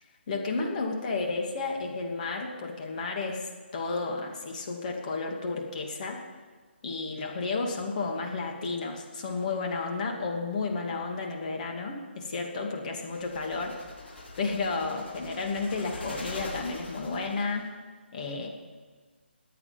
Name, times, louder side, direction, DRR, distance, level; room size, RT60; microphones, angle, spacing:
voice 1, 0.3-6.2 6.8-13.7 14.4-17.7 18.1-18.5, left 3 dB, 40° left, 1 dB, 2.5 m, -32 dB
sound 1, 13.0-17.6, left 2 dB, 70° left, 4.5 m, -43 dB
21.5 x 8.6 x 5.3 m, 1.5 s
figure-of-eight pair, 150°, 6 cm